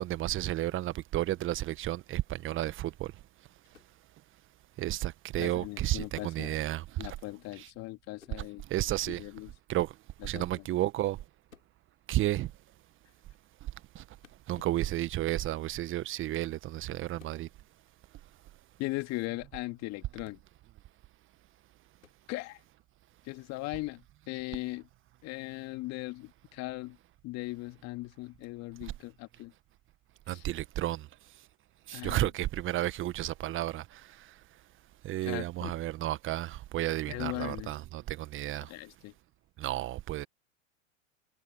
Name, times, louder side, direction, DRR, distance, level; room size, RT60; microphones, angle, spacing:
voice 1, 0.0-3.1 4.8-7.1 7.6-7.7 8.7-9.2 9.7-9.9 10.2-11.2 12.1-12.5 13.9-14.0 14.5-17.5 30.3-31.1 31.9-34.0 35.0-38.7 39.6-40.3, right 15 dB, 30° right, 1.3 m, -32 dB
sound 1, 3.7-4.0 6.1-6.5 8.2-8.4 10.2-10.5 11.5-11.8 14.2-14.4 17.2-17.4 20.2-20.5 22.0-22.2, left 6 dB, 80° left, 6.3 m, -57 dB
voice 2, 5.4-6.6 7.0-8.6 9.1-9.5 10.3-10.6 18.8-20.4 22.3-22.6 23.3-24.9 25.2-27.0 27.2-29.5 30.3-30.4 31.9-32.3 35.2-35.7 37.1-37.7 38.7-39.1, left 21 dB, 40° left, 2.4 m, -39 dB
figure-of-eight pair, 95°, 40 cm